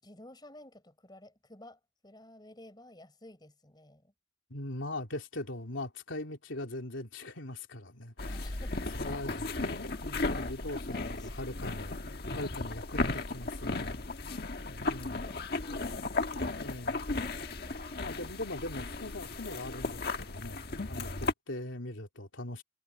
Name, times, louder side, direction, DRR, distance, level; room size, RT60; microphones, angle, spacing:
voice 1, 0.0-4.1 8.3-9.1 10.7-11.6 14.3-16.1 17.2-18.2, left 1 dB, 20° left, 4.6 m, -54 dB
voice 2, 4.5-8.6 9.0-14.3 14.6-15.2 16.5-17.0 18.0-22.6, left 1 dB, 80° left, 3.1 m, -41 dB
sound 1, 8.2-21.3, left 3 dB, 55° left, 1.5 m, -35 dB
head